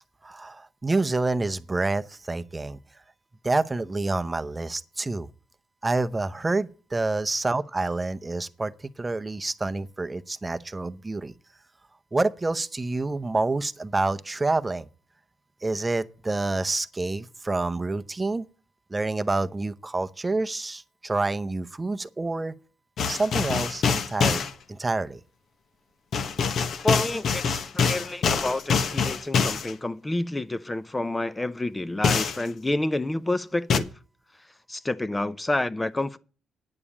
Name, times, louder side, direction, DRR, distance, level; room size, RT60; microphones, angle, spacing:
voice 1, 0.2-2.8 3.4-5.3 5.8-11.3 12.1-14.9 15.6-18.4 18.9-22.5 23.1-24.4 24.7-25.2, right 2 dB, 20° right, 0.7 m, -28 dB
sound 1, 23.0-24.5 26.1-29.7 32.0-32.4 33.7-33.8, left 6 dB, 60° left, 1.2 m, -24 dB
voice 2, 26.8-33.9 34.7-36.2, left 2 dB, 15° left, 0.6 m, -29 dB
9.8 x 7.0 x 7.1 m
cardioid pair, 90°, 0 cm